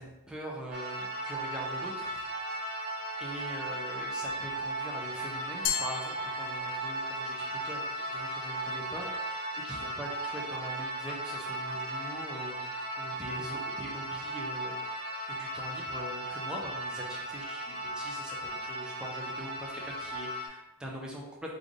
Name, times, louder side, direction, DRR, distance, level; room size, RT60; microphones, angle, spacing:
voice 1, 0.0-2.3 3.2-14.7 15.3-21.5, right 1 dB, 5° right, -3 dB, 0.5 m, -42 dB
sound 1, 0.7-20.5, right 1 dB, 85° right, 1.0 m, -36 dB
Glass, 5.6-7.1, left 8 dB, 85° left, 0.4 m, -35 dB
3.2 x 2.6 x 3.7 m, 0.97 s
head